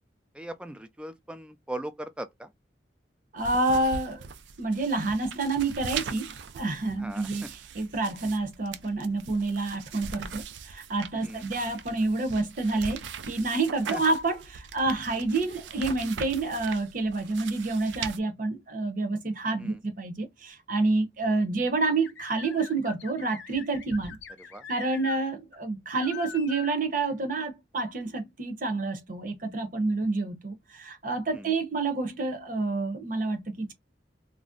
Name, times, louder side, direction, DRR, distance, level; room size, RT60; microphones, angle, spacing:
voice 1, 0.3-2.5 7.0-7.5 11.2-11.5 13.9-14.0 19.6-19.8 24.5-24.6 31.3-31.5, right 1 dB, 5° right, 0.3 m, -39 dB
voice 2, 3.3-4.3 4.6-24.2 24.7-33.7, right 3 dB, 50° right, 0.7 m, -28 dB
sound 1, 3.4-18.2, right 6 dB, 85° right, 0.4 m, -41 dB
sound 2, 21.9-25.2 25.5-25.6 26.0-26.8, left 7 dB, 85° left, 0.5 m, -43 dB
2.5 x 2.0 x 3.6 m
head